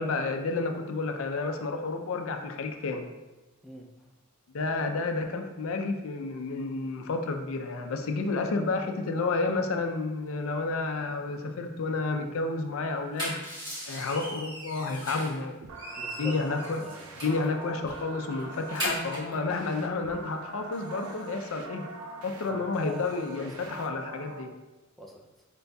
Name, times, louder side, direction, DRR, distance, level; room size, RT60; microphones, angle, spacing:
voice 1, 0.0-3.1 4.5-13.4 13.9-15.5 16.2-16.8 17.2-21.8 22.2-24.5, left 3 dB, 70° left, 5 dB, 0.4 m, -30 dB
voice 2, 3.6-4.0 16.0-16.4 16.8-17.3 22.5-23.0 23.4-23.5 25.0-25.3, left 1 dB, ahead, -1 dB, 0.3 m, -44 dB
sound 1, 12.9-15.4 15.7-17.5 17.9-18.0 18.3-19.4, equal, 20° right, 1.4 m, -37 dB
sound 2, 15.6-24.4, right 3 dB, 85° right, 0.5 m, -44 dB
4.5 x 3.9 x 2.3 m, 1.1 s
head